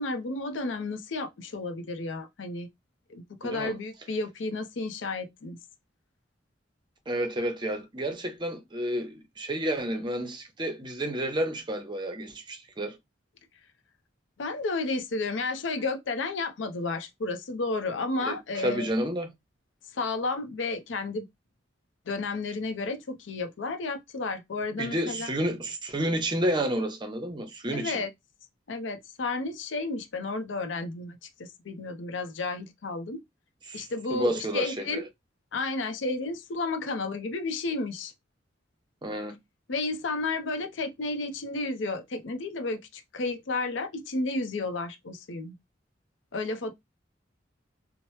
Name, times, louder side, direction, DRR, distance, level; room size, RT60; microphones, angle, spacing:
voice 1, 0.0-2.7 3.1-5.6 14.4-18.9 19.9-21.3 22.1-25.3 27.7-28.1 28.7-33.2 33.7-35.1 35.5-38.1 39.7-45.5 46.3-46.7, left 3 dB, 85° left, 0.6 m, -32 dB
voice 2, 3.4-3.7 7.1-13.0 18.2-19.3 24.8-28.1 33.7-33.8 34.1-35.0 39.0-39.4, right 1 dB, 25° right, 0.7 m, -30 dB
2.9 x 2.0 x 3.1 m
head